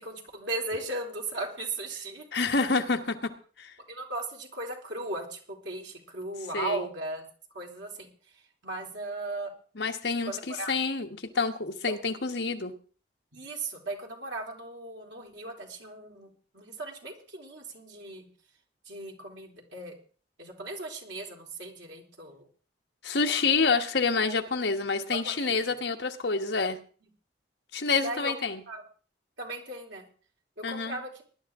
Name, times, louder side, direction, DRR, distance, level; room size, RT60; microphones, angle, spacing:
voice 1, 0.0-2.2 3.9-7.2 7.5-8.1 8.6-9.5 10.2-10.7 11.9-12.0 13.3-18.3 18.9-19.9 20.4-22.5 25.1-25.8 27.9-28.3 28.7-28.8 29.4-30.1 30.6-31.2, right 2 dB, 90° right, 0 dB, 3.8 m, -37 dB
voice 2, 2.3-3.3 3.6-3.7 6.5-6.8 9.7-12.7 23.0-26.8 27.7-28.6 30.6-31.0, left 4 dB, 70° left, 5 dB, 1.3 m, -28 dB
19.5 x 11.5 x 3.7 m, 0.41 s
head